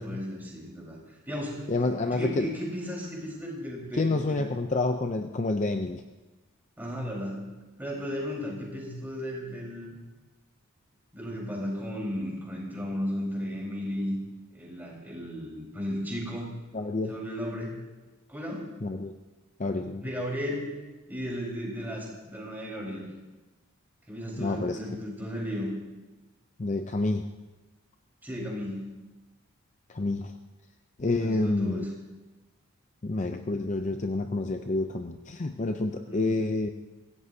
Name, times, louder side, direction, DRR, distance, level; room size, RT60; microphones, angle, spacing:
voice 1, 0.0-4.4 6.8-7.5 7.8-10.0 11.1-14.2 14.5-16.5 17.1-17.8 18.3-18.7 20.0-20.8 21.1-23.1 24.1-25.7 28.2-28.9 31.1-31.9 36.1-36.3, equal, 10° right, -3 dB, 4.3 m, -35 dB
voice 2, 1.7-2.5 4.0-6.0 16.7-17.2 18.8-19.1 19.6-20.0 24.4-24.8 26.6-27.3 29.9-30.3 31.0-31.9 33.0-36.7, left 2 dB, 35° left, 6 dB, 0.5 m, -28 dB
24.5 x 16.5 x 2.8 m, 1.2 s
head